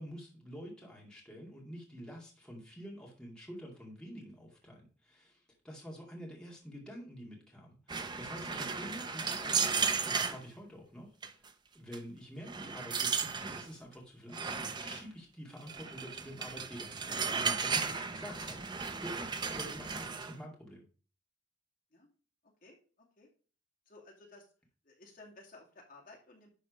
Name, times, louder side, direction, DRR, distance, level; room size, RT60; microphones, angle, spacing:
voice 1, 0.0-11.5 11.7-18.6 19.0-20.8, equal, 5° left, -3 dB, 2.4 m, -48 dB
sound 1, 7.9-10.4 11.2-11.5 11.9-12.0 12.5-13.7 14.3-15.0 15.7-20.3, right 5 dB, 25° right, 0.6 m, -35 dB
voice 2, 22.4-23.3 23.9-24.5 24.8-26.5, left 2 dB, 50° left, -1 dB, 2.6 m, -56 dB
11.5 x 4.2 x 5.2 m, 0.38 s
head